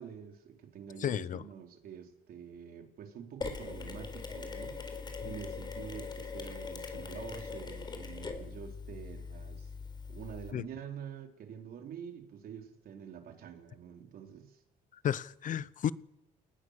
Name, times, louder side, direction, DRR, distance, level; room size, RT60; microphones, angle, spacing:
voice 1, 0.0-4.8 5.2-9.7 10.1-14.6, right 8 dB, 60° right, 4.0 m, -47 dB
voice 2, 1.0-1.4 10.5-10.6 15.0-15.9, left 9 dB, 50° left, 0.8 m, -32 dB
Mechanisms, 3.4-10.5, left 4 dB, 25° left, 4.3 m, -41 dB
29.5 x 19.5 x 6.7 m
cardioid pair, 110°, 17 cm